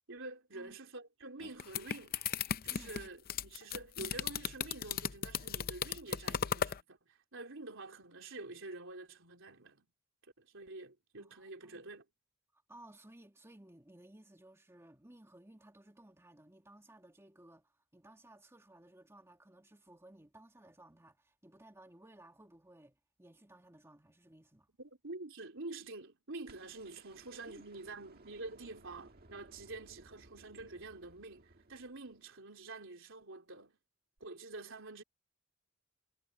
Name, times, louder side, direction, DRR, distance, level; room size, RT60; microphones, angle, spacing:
voice 1, 0.1-2.2 2.6-9.9 10.4-12.1 24.8-33.8 34.2-35.0, right 2 dB, 65° right, 4.0 m, -48 dB
sound 1, 1.4-6.8, left 8 dB, 45° left, 0.6 m, -36 dB
voice 2, 2.7-3.1 11.2-11.8 12.5-24.7 27.1-27.2 27.5-28.0, right 1 dB, 15° right, 2.1 m, -58 dB
sound 2, 26.5-32.7 34.2-34.3, right 2 dB, 45° right, 1.8 m, -61 dB
head